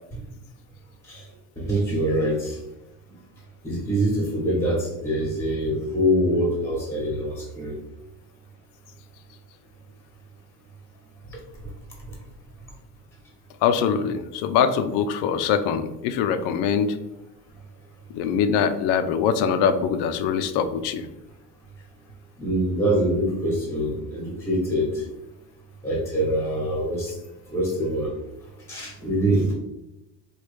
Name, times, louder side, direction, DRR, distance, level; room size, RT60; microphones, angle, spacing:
voice 1, 1.6-2.6 3.6-7.8 11.3-11.4 12.0-12.1 22.4-25.1 25.8-27.2 27.5-28.1 28.7-29.5, equal, 5° left, -2 dB, 1.1 m, -24 dB
voice 2, 13.6-17.0 18.1-21.1, left 7 dB, 75° left, 10 dB, 0.5 m, -23 dB
3.1 x 2.3 x 3.2 m, 0.92 s
cardioid pair, 105°, 41 cm